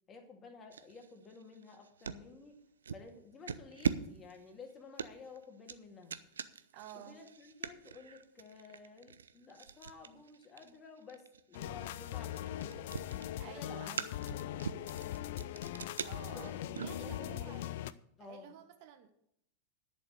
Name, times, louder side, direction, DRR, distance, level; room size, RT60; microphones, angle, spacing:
voice 1, 0.1-2.6 2.9-6.2 6.9-12.9 13.5-14.0 14.3-14.9 16.2-17.6 18.2-18.6, left 4 dB, 25° left, 3 dB, 2.1 m, -53 dB
sound 1, 0.7-2.3 2.8-3.1 3.5-17.5, right 6 dB, 70° right, 0.5 m, -42 dB
voice 2, 6.7-7.2 13.4-14.1 16.0-17.7 18.2-19.1, right 10 dB, 45° right, 8 dB, 1.0 m, -51 dB
sound 2, 11.5-17.9, left 12 dB, 55° left, 0.4 m, -41 dB
11.0 x 6.7 x 6.7 m, 0.74 s
figure-of-eight pair, 90°, 0 cm